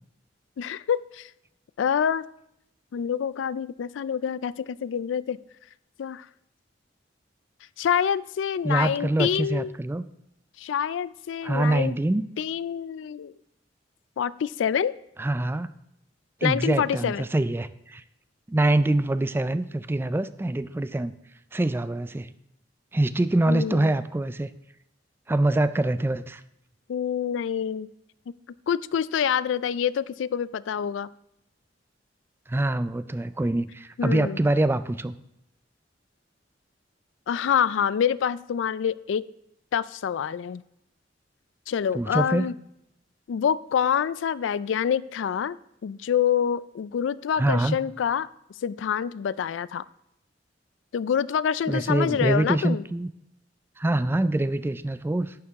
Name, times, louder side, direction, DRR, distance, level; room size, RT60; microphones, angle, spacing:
voice 1, 0.6-1.3 1.8-2.3 2.9-5.4 6.0-6.3 7.8-9.8 10.6-11.9 12.4-13.3 14.2-14.9 16.4-17.3 23.5-23.9 26.9-27.9 28.3-28.4 28.7-31.1 34.0-34.4 37.3-39.2 39.7-40.6 41.7-42.5 43.3-45.6 45.8-48.3 48.6-49.8 50.9-52.8, left 8 dB, 85° left, 19 dB, 0.3 m, -26 dB
voice 2, 8.6-10.0 11.4-12.3 15.2-15.7 16.4-18.0 18.5-21.1 21.5-22.3 22.9-24.5 25.3-26.4 32.5-35.1 41.9-42.5 47.4-47.8 51.7-53.1 53.8-55.3, right 1 dB, 10° right, 14 dB, 0.3 m, -25 dB
10.5 x 9.6 x 3.5 m, 0.80 s
head